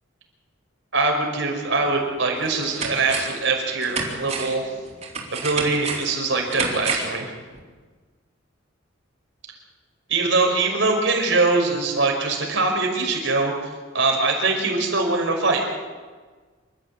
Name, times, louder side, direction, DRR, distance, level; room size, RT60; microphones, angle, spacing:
voice 1, 0.9-4.7 5.3-7.3 10.1-15.6, right 3 dB, 65° right, 2 dB, 5.6 m, -22 dB
sound 1, 1.8-1.9 2.4-3.5 3.8-7.2 7.5-7.6, right 4 dB, 35° right, 4.6 m, -30 dB
27.5 x 14.0 x 8.5 m, 1.4 s
head